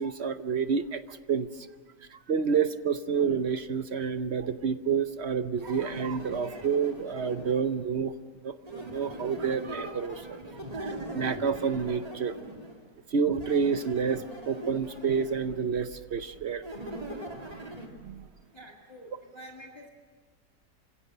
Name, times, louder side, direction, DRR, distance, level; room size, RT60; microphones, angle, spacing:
voice 1, 0.0-1.5 2.1-8.1 8.4-10.4 10.7-12.4 13.1-16.6 18.0-18.3, right 6 dB, 50° right, 11 dB, 0.9 m, -29 dB
sound 1, 5.6-7.8 8.6-12.8 13.4-15.5 16.6-17.9, right 1 dB, 25° right, 2.4 m, -41 dB
voice 2, 18.5-19.9, equal, 15° left, 0 dB, 2.0 m, -47 dB
27.5 x 16.0 x 7.8 m, 1.5 s
omnidirectional pair, 1.7 m